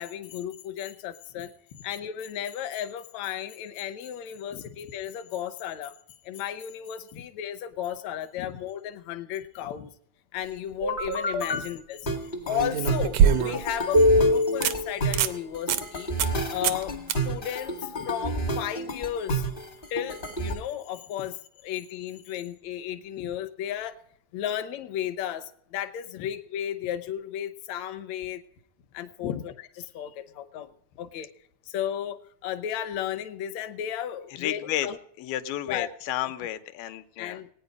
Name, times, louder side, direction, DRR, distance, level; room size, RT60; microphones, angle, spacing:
voice 1, 0.0-1.5 1.8-6.0 6.2-9.9 10.3-12.0 12.5-16.1 16.5-19.5 19.9-21.4 21.6-24.0 24.3-28.4 28.9-31.3 31.7-35.0 35.7-35.9 37.2-37.5, left 10 dB, 70° left, 9 dB, 1.7 m, -34 dB
sound 1, 10.7-11.1 12.5-13.8 14.2-14.3 14.6-14.7 15.1-15.4 15.7-15.8 16.2-16.4 16.6-16.8 17.1-17.2 20.3-20.4, right 8 dB, 85° right, 1.6 m, -24 dB
sound 2, 10.8-11.6 12.1-20.5, equal, 45° left, 0.6 m, -27 dB
voice 2, 34.4-34.9 35.2-37.4, left 12 dB, 85° left, 10 dB, 2.7 m, -32 dB
19.0 x 9.6 x 5.3 m, 0.68 s
omnidirectional pair, 4.2 m